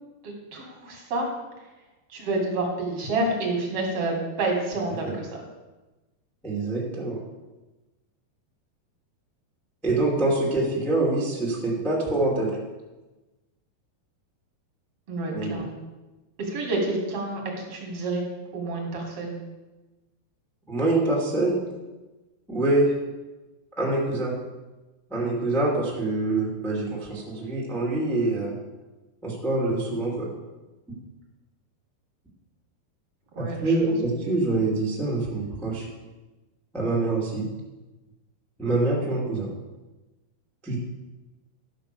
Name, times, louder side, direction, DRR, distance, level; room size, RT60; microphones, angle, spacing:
voice 1, 0.2-1.3 2.1-5.4 15.1-15.7 16.4-18.2 18.5-19.4 33.4-34.0, right 2 dB, 40° right, -1 dB, 2.6 m, -29 dB
voice 2, 6.4-7.2 9.8-12.5 15.3-15.6 20.7-21.6 22.5-22.9 23.8-24.3 25.1-28.6 29.2-30.3 33.4-35.8 36.7-37.5 38.6-39.5 40.6-40.8, right 2 dB, ahead, -4 dB, 1.3 m, -25 dB
11.5 x 6.0 x 6.9 m, 1.1 s
omnidirectional pair, 4.9 m